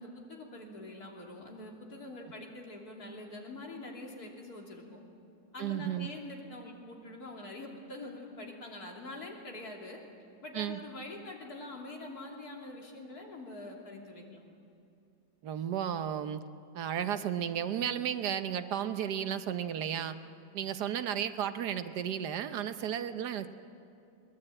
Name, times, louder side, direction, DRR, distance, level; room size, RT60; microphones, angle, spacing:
voice 1, 0.0-5.0 5.5-10.0 10.4-14.4, left 2 dB, 70° left, -1 dB, 3.5 m, -45 dB
voice 2, 5.6-6.1 10.5-10.8 15.4-16.4 16.7-20.2 20.5-23.5, right 9 dB, 90° right, 10 dB, 1.5 m, -33 dB
22.0 x 19.5 x 8.8 m, 2.5 s
omnidirectional pair, 1.7 m